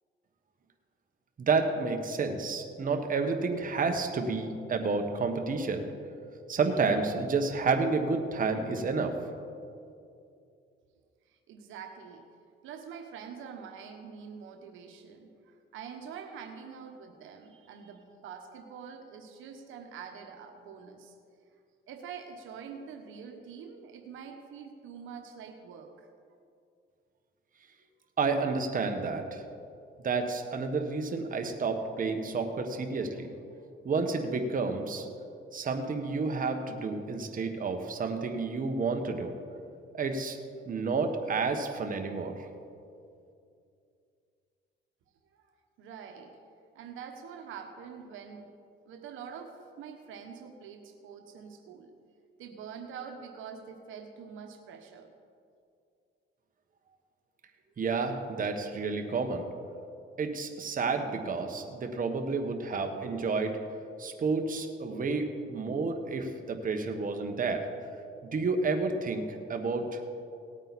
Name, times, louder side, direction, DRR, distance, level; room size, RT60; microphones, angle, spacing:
voice 1, 1.4-5.9 6.5-9.1 28.2-29.4 30.0-33.3 33.8-35.1 35.5-39.3 39.9-40.4 40.7-42.3 57.8-59.5 60.2-63.6 64.0-67.7 68.3-70.0, right 4 dB, 45° right, 5 dB, 1.3 m, -30 dB
voice 2, 11.3-12.2 12.6-21.1 21.9-26.1 45.3-45.5 45.8-46.4 46.7-48.5 48.8-51.9 52.4-55.1, right 6 dB, 85° right, 4 dB, 1.1 m, -45 dB
18.0 x 9.0 x 4.2 m, 2.4 s
cardioid pair, 90°, 20 cm